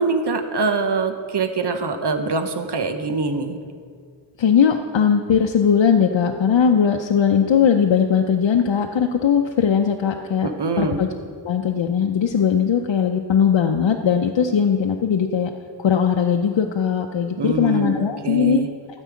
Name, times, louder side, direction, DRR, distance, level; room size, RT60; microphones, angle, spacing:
voice 1, 0.0-3.6 10.4-11.0 17.4-18.7, right 3 dB, 65° right, 7 dB, 1.0 m, -24 dB
voice 2, 4.4-10.5 10.8-11.1 11.4-15.5 15.8-18.7, left 7 dB, 85° left, 3 dB, 0.7 m, -19 dB
13.0 x 5.4 x 8.3 m, 2.1 s
wide cardioid pair, 65°, 43 cm